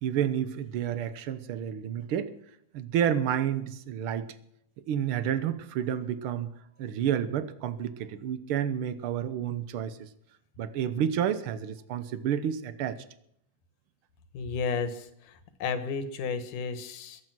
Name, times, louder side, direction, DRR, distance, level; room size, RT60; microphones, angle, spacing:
voice 1, 0.0-2.3 2.7-4.3 4.9-6.5 6.8-10.1 10.6-13.0, right 9 dB, 80° right, 13 dB, 1.2 m, -30 dB
voice 2, 14.3-15.1 15.6-17.2, left 5 dB, 80° left, 11 dB, 2.8 m, -32 dB
22.5 x 8.5 x 6.1 m, 0.72 s
omnidirectional pair, 3.6 m